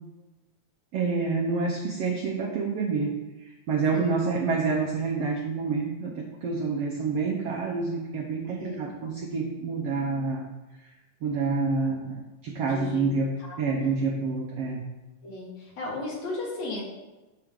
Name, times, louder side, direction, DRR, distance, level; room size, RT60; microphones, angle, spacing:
voice 1, 0.9-10.5 11.2-14.8, right 4 dB, 85° right, 0 dB, 1.3 m, -28 dB
voice 2, 3.9-4.3 8.6-8.9 12.7-13.1 13.4-13.6 15.2-16.8, left 2 dB, 55° left, -3 dB, 2.5 m, -35 dB
12.0 x 4.8 x 3.7 m, 1.1 s
omnidirectional pair, 3.9 m